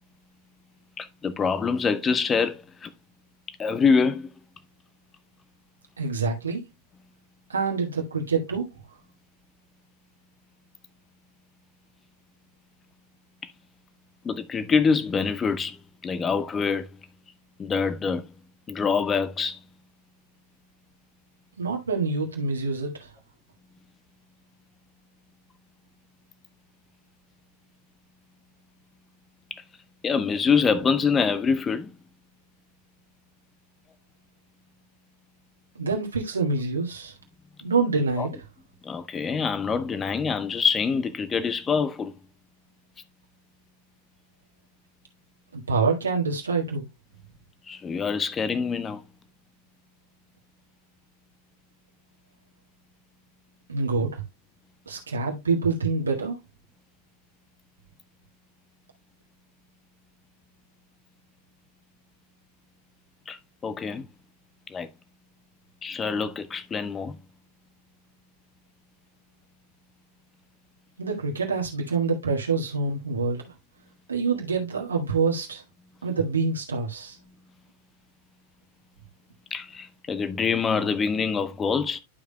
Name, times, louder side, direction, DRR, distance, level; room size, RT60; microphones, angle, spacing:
voice 1, 1.0-2.9 3.5-4.3 13.4-13.5 14.2-16.9 17.6-18.3 18.7-19.6 29.5-29.6 30.0-31.9 38.2-38.3 38.8-42.1 47.7-49.0 63.3-64.1 64.7-64.9 65.8-67.2 79.5-82.0, left 5 dB, 20° left, 0.7 m, -25 dB
voice 2, 6.0-6.6 7.5-8.7 21.6-23.1 35.7-37.1 37.6-38.3 45.5-46.9 53.7-54.2 54.8-56.4 71.0-73.5 74.1-75.6 76.0-77.2, right 4 dB, 75° right, 1.8 m, -26 dB
12.0 x 5.0 x 2.2 m
figure-of-eight pair, 90°, 0 cm